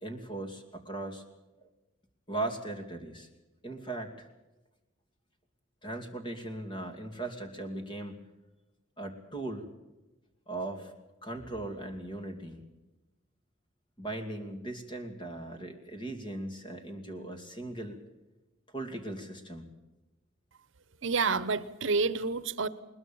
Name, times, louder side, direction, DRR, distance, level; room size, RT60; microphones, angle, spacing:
voice 1, 0.0-1.2 1.6-1.7 2.3-3.3 3.6-4.3 5.8-8.2 9.0-9.7 10.5-10.9 11.2-12.6 14.0-18.0 18.7-19.7, right 2 dB, 25° left, 6 dB, 2.5 m, -38 dB
voice 2, 21.0-22.7, right 4 dB, 70° right, 16 dB, 0.9 m, -28 dB
21.0 x 20.5 x 7.2 m, 1.1 s
head